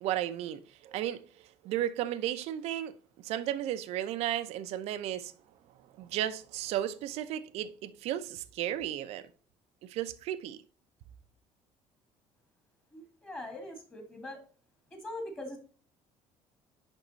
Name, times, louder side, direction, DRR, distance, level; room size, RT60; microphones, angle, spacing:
voice 1, 0.0-5.3 6.0-9.3 9.8-10.6, right 12 dB, 70° right, 0.7 m, -34 dB
voice 2, 12.9-14.4 14.9-15.6, left 1 dB, 15° left, 1.8 m, -42 dB
10.5 x 3.6 x 4.0 m
cardioid pair, 160°, 11 cm